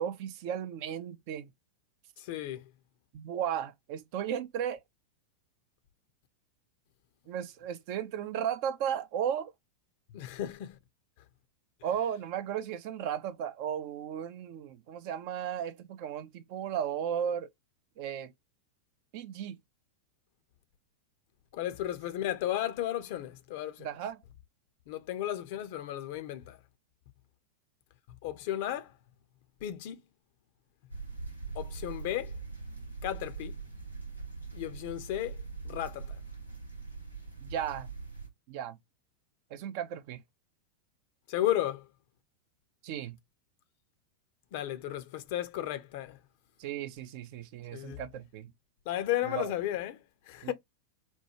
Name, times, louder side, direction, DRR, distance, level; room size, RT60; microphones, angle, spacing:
voice 1, 0.0-1.5 3.1-4.8 7.3-9.5 11.8-17.5 18.0-18.3 19.1-19.6 23.8-24.2 37.4-37.9 38.5-38.8 39.5-40.2 42.8-43.2 46.6-48.5 49.3-49.5 50.4-50.5, right 9 dB, 45° right, 0.5 m, -35 dB
voice 2, 2.2-2.7 10.1-10.8 21.5-23.9 24.9-26.6 28.2-29.0 29.6-30.0 31.5-32.4 33.0-33.6 34.5-36.2 41.3-41.9 44.5-46.2 47.7-48.0 48.9-50.5, left 13 dB, 50° left, 0.6 m, -34 dB
sound 1, 30.9-38.3, right 4 dB, 90° right, 0.9 m, -42 dB
4.4 x 2.2 x 2.8 m
figure-of-eight pair, 90°, 0 cm